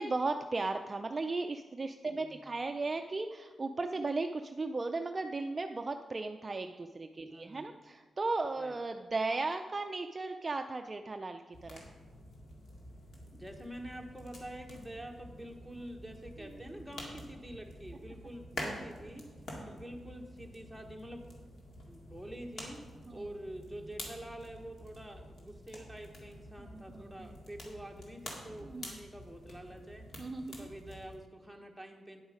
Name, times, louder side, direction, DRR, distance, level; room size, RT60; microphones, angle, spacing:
voice 1, 0.0-11.8 19.6-19.8 23.1-23.2 26.6-27.4 28.6-29.0 30.2-30.7, right 3 dB, 30° right, 6 dB, 0.4 m, -36 dB
voice 2, 2.0-2.5 7.2-7.7 8.6-8.7 13.3-19.3 19.7-21.3 21.9-22.8 23.1-30.1 30.5-32.2, right 1 dB, ahead, 1 dB, 1.2 m, -47 dB
sound 1, 11.5-31.2, left 1 dB, 60° left, 2.0 m, -48 dB
9.5 x 8.0 x 5.0 m, 1.4 s
cardioid pair, 105°, 0 cm